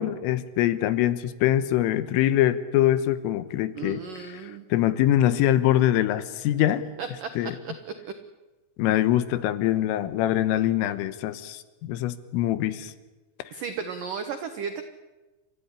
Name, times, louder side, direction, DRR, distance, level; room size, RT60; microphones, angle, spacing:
voice 1, 0.0-4.0 4.3-4.4 4.7-6.9 7.4-7.6 8.8-12.9, left 13 dB, 85° left, 13 dB, 3.7 m, -23 dB
voice 2, 3.8-4.7 7.0-8.1 13.5-14.8, right 6 dB, 85° right, 8 dB, 1.8 m, -35 dB
30.0 x 14.5 x 9.9 m, 1.2 s
omnidirectional pair, 5.7 m